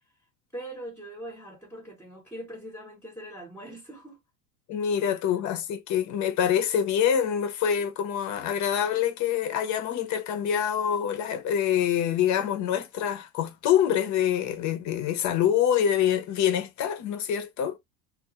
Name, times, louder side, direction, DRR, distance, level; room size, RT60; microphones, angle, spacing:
voice 1, 0.5-4.2, right 1 dB, 5° left, 0.8 m, -41 dB
voice 2, 4.7-17.8, left 9 dB, 40° left, 0.6 m, -25 dB
2.3 x 2.1 x 2.8 m
hypercardioid pair, 90°, 45 cm